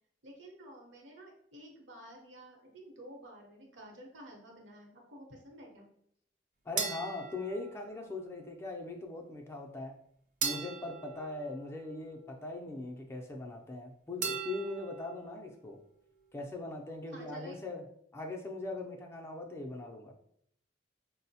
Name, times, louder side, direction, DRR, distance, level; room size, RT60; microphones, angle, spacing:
voice 1, 0.2-5.9 17.1-17.5, right 1 dB, 80° right, 0 dB, 0.8 m, -51 dB
voice 2, 6.7-9.9 10.4-15.8 16.3-17.8 18.1-20.1, left 2 dB, 15° left, 1 dB, 0.3 m, -40 dB
sound 1, 6.8-8.3 10.4-12.2 14.2-15.3, right 5 dB, 40° right, 0.5 m, -39 dB
4.4 x 2.0 x 2.7 m, 0.70 s
head